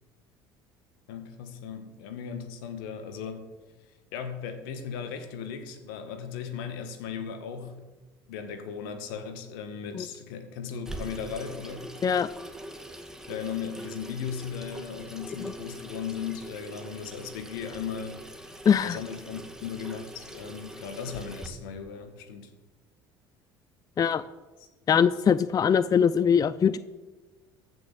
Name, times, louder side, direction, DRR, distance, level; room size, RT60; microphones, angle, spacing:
voice 1, 1.1-3.5 4.1-7.9 8.3-11.9 13.3-22.5 24.6-24.7, left 7 dB, 80° left, 8 dB, 1.6 m, -37 dB
Water tap faucet / Sink (filling or washing), 10.8-21.5, right 1 dB, 5° right, 1.7 m, -43 dB
voice 2, 18.7-19.0 24.0-24.2 24.9-26.8, left 7 dB, 30° left, 16 dB, 0.5 m, -22 dB
14.5 x 6.3 x 7.0 m, 1.2 s
hypercardioid pair, 70°, 12 cm